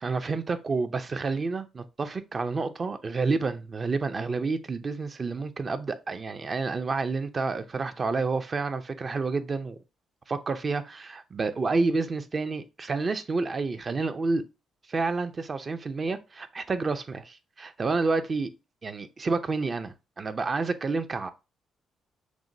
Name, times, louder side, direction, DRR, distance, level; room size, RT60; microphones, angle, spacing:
voice 1, 0.0-9.8 10.3-14.4 14.9-18.5 18.8-21.3, right 4 dB, 35° right, 0.5 m, -29 dB
6.0 x 2.1 x 2.6 m
cardioid pair, 90°, 0 cm